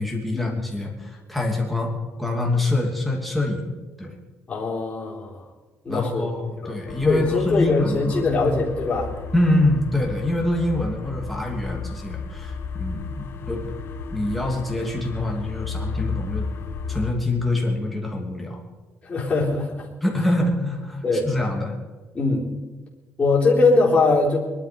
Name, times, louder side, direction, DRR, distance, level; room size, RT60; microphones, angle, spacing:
voice 1, 0.0-3.6 4.0-4.1 5.9-8.2 9.3-13.7 14.1-16.5 16.9-18.6 20.0-21.8, left 1 dB, ahead, -1 dB, 2.8 m, -25 dB
voice 2, 4.5-5.4 5.8-6.3 6.6-9.1 19.0-19.9 21.0-21.3 22.1-22.5 23.2-24.4, left 3 dB, 20° left, -6 dB, 4.0 m, -22 dB
sound 1, 6.9-17.1, left 5 dB, 45° left, 1.3 m, -33 dB
22.5 x 12.0 x 5.3 m, 1.2 s
cardioid pair, 175°, 5 cm